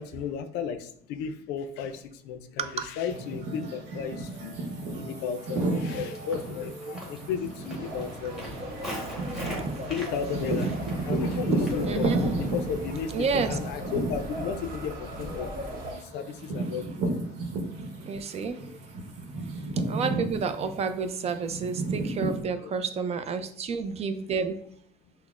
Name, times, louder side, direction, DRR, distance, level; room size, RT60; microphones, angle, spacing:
voice 1, 0.0-17.5 19.4-20.0 21.3-21.4 22.6-22.7 23.4-23.5, left 7 dB, 90° left, 8 dB, 0.4 m, -35 dB
sound 1, 3.1-18.2 18.6-22.4, right 2 dB, 85° right, 0.9 m, -32 dB
Walk footsteps, 5.4-12.7, equal, ahead, 1.1 m, -43 dB
sound 2, 7.8-15.9, right 1 dB, 60° right, 0.9 m, -38 dB
voice 2, 9.4-9.9 11.8-12.2 13.1-13.6 18.0-18.7 19.9-24.6, right 5 dB, 40° right, 9 dB, 0.4 m, -30 dB
5.8 x 2.0 x 2.4 m, 0.62 s
cardioid pair, 110°, 17 cm